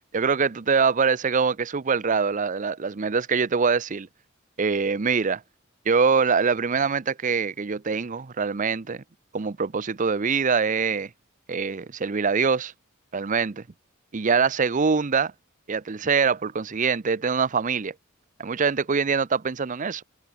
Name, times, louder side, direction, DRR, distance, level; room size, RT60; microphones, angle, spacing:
voice 1, 0.1-4.1 4.6-5.4 5.9-9.0 9.3-11.1 11.5-12.7 13.1-13.6 14.1-15.3 15.7-17.9 18.4-20.0, right 5 dB, 40° right, 0.6 m, -24 dB
head